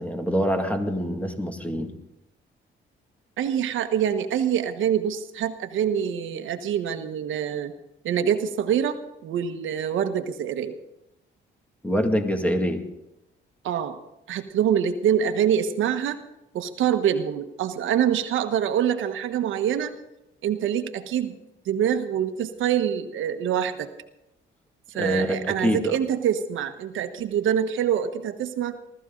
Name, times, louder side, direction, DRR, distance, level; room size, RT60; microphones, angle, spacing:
voice 1, 0.0-1.9 11.8-12.8 25.0-26.0, equal, 5° left, 5 dB, 2.2 m, -25 dB
voice 2, 3.4-7.7 8.0-10.8 13.6-14.0 14.3-16.2 16.5-19.9 20.4-21.4 21.6-23.9 24.9-28.8, right 9 dB, 80° right, 8 dB, 1.3 m, -25 dB
20.5 x 14.0 x 3.9 m, 0.90 s
cardioid pair, 90°, 20 cm